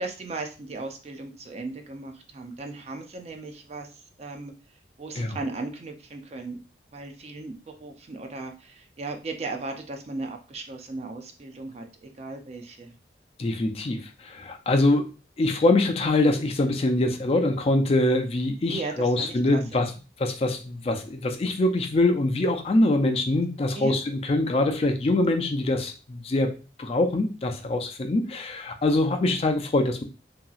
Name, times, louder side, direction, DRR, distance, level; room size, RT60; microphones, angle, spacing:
voice 1, 0.0-3.9 4.2-4.5 5.0-6.6 6.9-12.9 18.7-19.6 23.8-24.0, right 3 dB, 35° right, 4 dB, 0.4 m, -36 dB
voice 2, 13.4-15.1 15.4-19.9 20.2-30.0, left 2 dB, 35° left, 5 dB, 0.4 m, -24 dB
2.8 x 2.7 x 2.3 m, 0.33 s
head